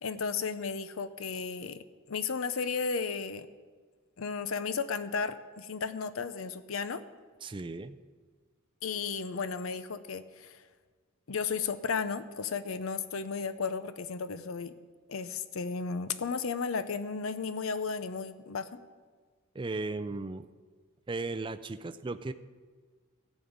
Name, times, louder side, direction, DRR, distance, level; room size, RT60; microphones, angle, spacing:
voice 1, 0.0-3.5 4.2-7.0 8.8-10.6 11.3-14.7 15.1-18.8, left 5 dB, 75° left, 13 dB, 0.6 m, -34 dB
voice 2, 7.4-8.0 19.5-20.5 21.1-22.3, right 3 dB, 25° right, 11 dB, 0.4 m, -36 dB
14.5 x 5.3 x 8.7 m, 1.5 s
head